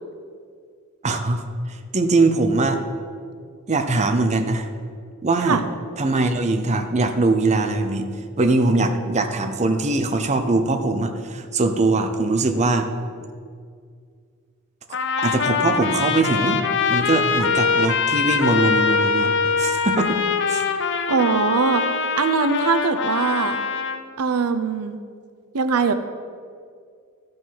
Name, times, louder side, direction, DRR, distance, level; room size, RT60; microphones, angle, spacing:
voice 1, 1.0-2.8 3.7-4.7 5.2-5.6 6.0-8.1 8.4-12.9 15.2-16.6 16.9-20.2 20.5-20.6, right 2 dB, 30° right, 6 dB, 0.7 m, -21 dB
Trumpet, 14.9-24.0, left 5 dB, 55° left, 0.7 m, -23 dB
voice 2, 21.1-23.6 24.2-25.0 25.5-25.9, right 5 dB, 85° right, 10 dB, 0.6 m, -21 dB
13.5 x 5.3 x 5.7 m, 2.1 s
head